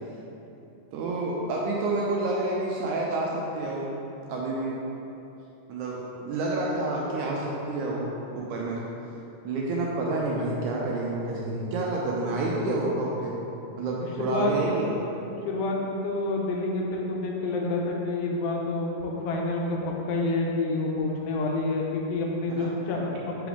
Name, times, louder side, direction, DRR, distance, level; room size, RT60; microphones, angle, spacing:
voice 1, 0.9-3.9 4.3-4.8 5.7-8.8 9.4-13.4 13.8-15.0 22.5-22.7, right 2 dB, 80° right, -3 dB, 1.9 m, -29 dB
voice 2, 14.2-14.8 15.5-23.5, left 2 dB, 90° left, -1 dB, 2.5 m, -28 dB
6.0 x 4.8 x 3.5 m, 2.9 s
omnidirectional pair, 3.9 m